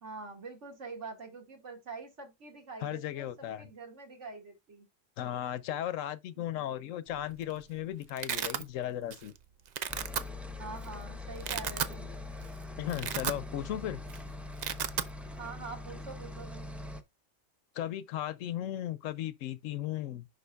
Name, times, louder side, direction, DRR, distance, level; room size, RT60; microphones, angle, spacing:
voice 1, 0.0-4.9 6.4-6.9 10.6-12.1 15.4-16.7, right 4 dB, 60° right, 2.2 m, -45 dB
voice 2, 2.8-3.7 5.2-9.3 12.8-14.0 17.7-20.3, left 12 dB, 80° left, 1.0 m, -36 dB
Domestic sounds home sounds, 7.2-7.5 7.8-8.6 9.1-9.4 9.7-10.2 10.8-10.9 11.3-12.0 12.4-12.5 12.8-13.8 14.0-14.2 14.4-15.1, right 8 dB, 90° right, 0.3 m, -34 dB
sound 1, 9.9-17.0, left 2 dB, ahead, 0.5 m, -43 dB
10.5 x 3.9 x 2.3 m
omnidirectional pair, 1.4 m